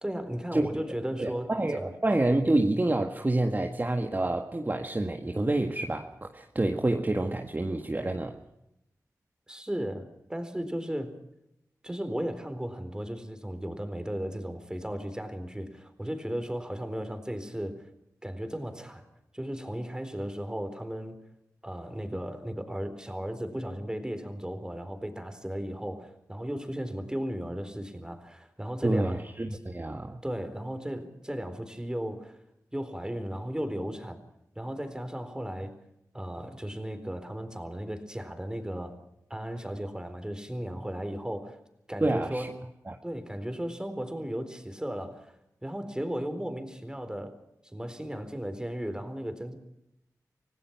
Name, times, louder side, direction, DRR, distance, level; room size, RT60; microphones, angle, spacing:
voice 1, 0.0-1.9 9.5-11.2 11.8-17.9 18.2-19.1 19.3-21.2 21.6-29.2 30.2-32.4 32.7-34.2 34.6-35.7 36.1-39.0 39.3-41.6 41.9-42.5 43.0-45.4 45.6-47.4 47.6-49.6, equal, 10° right, 4.1 m, -35 dB
voice 2, 1.2-8.4 28.8-30.2 42.0-42.5 42.9-43.0, right 2 dB, 30° right, 1.8 m, -28 dB
26.0 x 17.5 x 5.9 m
cardioid pair, 50°, 6 cm